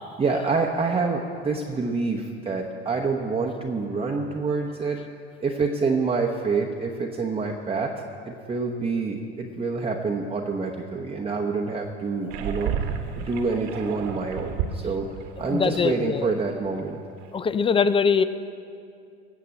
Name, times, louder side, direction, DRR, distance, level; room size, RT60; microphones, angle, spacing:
voice 1, 0.2-5.0 5.4-7.9 8.3-12.9 13.2-15.1 15.4-17.0, right 4 dB, 20° right, 0 dB, 0.9 m, -27 dB
sound 1, 12.3-16.3 16.6-16.8 17.2-17.3, right 7 dB, 65° right, 1.4 m, -32 dB
voice 2, 15.4-16.3 17.3-18.2, left 6 dB, 15° left, 14 dB, 0.4 m, -22 dB
16.5 x 5.9 x 7.7 m, 2.4 s
supercardioid pair, 100°, 32 cm